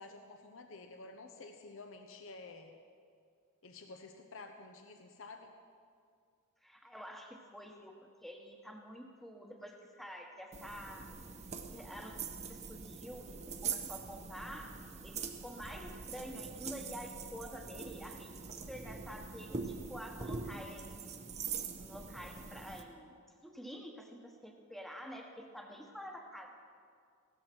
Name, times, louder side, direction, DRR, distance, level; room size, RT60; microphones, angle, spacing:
voice 1, 0.0-2.7 3.6-5.5, left 3 dB, 60° left, 5 dB, 0.8 m, -51 dB
voice 2, 6.6-8.0 8.2-11.1 11.7-14.8 15.0-21.3 21.7-23.2 23.4-26.5, equal, ahead, 2 dB, 1.2 m, -48 dB
sound 1, 10.5-22.8, right 5 dB, 30° right, 0.7 m, -43 dB
16.5 x 13.0 x 4.5 m, 2.2 s
head